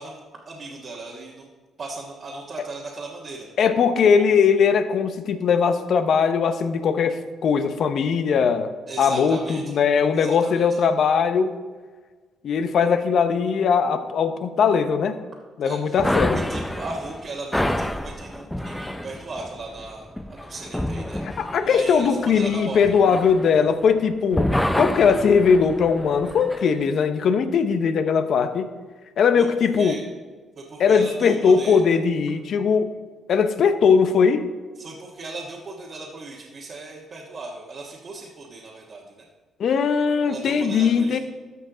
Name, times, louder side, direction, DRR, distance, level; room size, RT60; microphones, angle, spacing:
voice 1, 0.0-1.5 1.8-3.5 8.9-9.6 10.1-10.8 15.6-16.0 16.3-22.8 29.4-29.5 29.7-30.0 30.6-31.8 34.8-39.2 40.2-41.2, right 3 dB, 45° right, -4 dB, 1.3 m, -37 dB
voice 2, 3.6-8.7 9.0-11.6 12.4-15.2 15.6-16.4 21.2-24.5 24.8-28.7 29.2-30.0 30.8-32.9 33.3-34.5 39.6-41.2, left 6 dB, 65° left, 10 dB, 0.7 m, -20 dB
sound 1, 16.0-24.0 24.3-26.6, left 1 dB, 5° left, 0.5 m, -28 dB
13.5 x 5.5 x 3.9 m, 1.4 s
cardioid pair, 90°, 0 cm